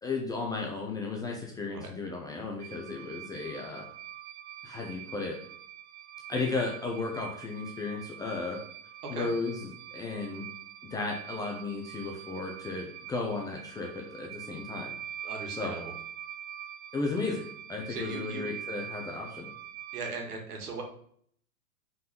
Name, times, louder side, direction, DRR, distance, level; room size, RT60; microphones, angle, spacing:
voice 1, 0.0-3.8 4.6-5.3 6.3-8.6 9.1-10.4 10.8-15.0 15.5-15.7 16.9-17.4 17.7-19.5, left 3 dB, 10° left, 0 dB, 0.5 m, -34 dB
sound 1, 2.6-20.1, right 11 dB, 45° right, 0.6 m, -44 dB
voice 2, 15.2-15.9 17.9-18.5 19.9-20.8, right 3 dB, 75° right, 2 dB, 2.0 m, -38 dB
5.4 x 4.0 x 5.2 m, 0.62 s
hypercardioid pair, 120°, 46 cm